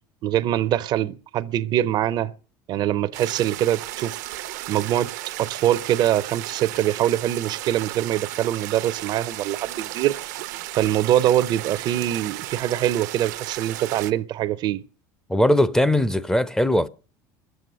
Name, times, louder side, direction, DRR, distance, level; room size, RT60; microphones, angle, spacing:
voice 1, 0.2-2.3 2.7-4.2 4.7-10.2 10.7-14.8, right 12 dB, 50° right, 0.6 m, -23 dB
sound 1, 3.1-14.1, right 16 dB, 90° right, 0.9 m, -34 dB
voice 2, 15.3-16.9, left 1 dB, 5° left, 0.6 m, -19 dB
20.0 x 7.8 x 6.6 m
supercardioid pair, 115°, 9 cm